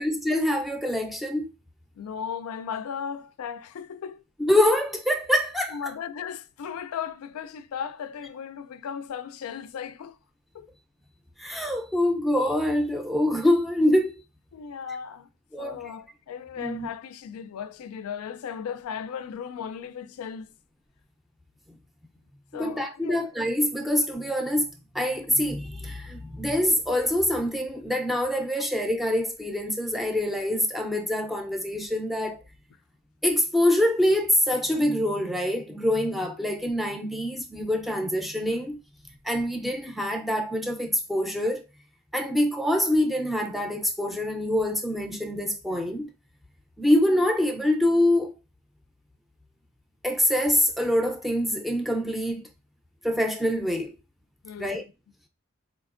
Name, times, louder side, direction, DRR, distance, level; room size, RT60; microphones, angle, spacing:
voice 1, 0.0-1.5 4.4-5.8 11.4-14.2 15.5-15.8 16.6-16.9 22.5-24.7 24.9-32.4 33.2-38.8 39.2-41.6 42.1-46.1 46.8-48.3 50.0-52.4 53.0-53.9 54.6-54.8, left 1 dB, ahead, 0.4 m, -25 dB
voice 2, 2.0-4.2 5.7-10.2 10.5-10.7 14.5-15.3 15.6-20.5 22.5-23.3 54.4-54.8, left 7 dB, 90° left, 0.3 m, -36 dB
4.2 x 2.9 x 2.4 m
head